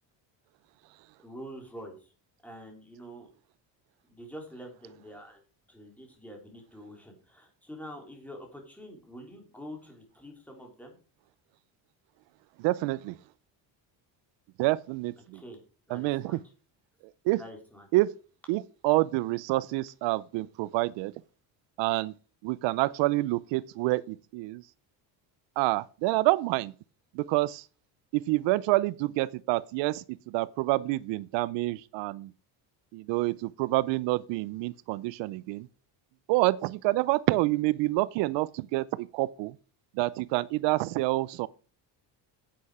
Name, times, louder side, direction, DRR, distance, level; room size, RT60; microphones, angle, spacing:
voice 1, 1.2-2.1 2.4-3.3 4.1-11.0 15.3-15.6 15.9-16.4 17.4-17.9, equal, 5° left, 3.4 m, -46 dB
voice 2, 12.6-13.2 14.6-15.4 15.9-16.4 17.2-17.4 17.9-18.1 18.5-21.1 21.8-22.1 22.4-24.6 25.6-26.7 27.1-27.7 28.1-32.3 32.9-35.7 36.3-39.6 39.9-41.5, right 19 dB, 80° right, 0.6 m, -27 dB
10.0 x 8.6 x 4.9 m
cardioid pair, 140°, 43 cm